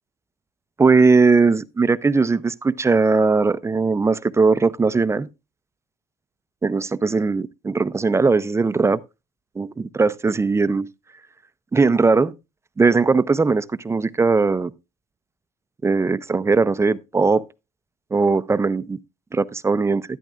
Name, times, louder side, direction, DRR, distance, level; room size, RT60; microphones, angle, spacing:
voice 1, 0.8-5.3 6.6-9.0 9.6-10.9 11.7-12.3 12.8-14.7 15.8-17.4 18.1-19.0 19.3-20.0, right 4 dB, 15° right, 0.4 m, -19 dB
12.0 x 10.5 x 2.4 m
cardioid pair, 110°, 17 cm